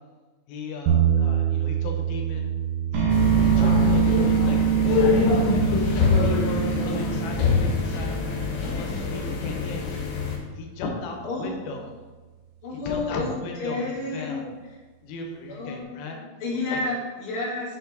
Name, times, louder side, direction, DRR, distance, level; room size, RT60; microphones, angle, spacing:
voice 1, 0.5-2.5 2.9-5.9 6.1-8.3 8.6-9.8 10.5-11.9 12.9-14.5 15.0-16.4 16.7-16.9, left 3 dB, 85° left, 2 dB, 2.7 m, -36 dB
sound 1, 0.9-10.9, right 10 dB, 80° right, 1.9 m, -29 dB
sound 2, 2.9-9.0, right 8 dB, 65° right, 2.2 m, -24 dB
sound 3, 3.1-10.4, left 4 dB, 70° left, 1.7 m, -24 dB
voice 2, 11.2-11.5 12.6-14.3 15.5-16.1 16.4-17.8, left 2 dB, 45° left, -6 dB, 1.9 m, -30 dB
6.2 x 4.5 x 3.9 m, 1.3 s
omnidirectional pair, 4.2 m